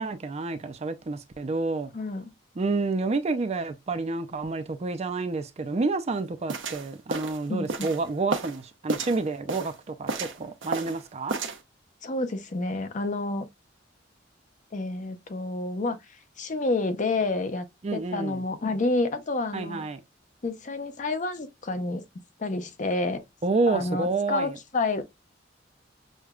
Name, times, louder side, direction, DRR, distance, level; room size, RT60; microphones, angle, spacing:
voice 1, 0.0-1.9 2.6-11.4 17.8-18.4 19.5-20.0 23.4-24.5, right 3 dB, 35° right, 0.4 m, -29 dB
voice 2, 1.9-2.3 7.5-7.9 12.0-13.5 14.7-17.7 17.9-19.9 20.4-22.0 22.4-23.2 23.7-25.0, left 2 dB, 40° left, 0.6 m, -29 dB
sound 1, 6.5-8.6 8.9-9.8 10.1-11.0 11.3-11.6, right 3 dB, 80° right, 0.7 m, -32 dB
6.3 x 2.2 x 2.3 m
head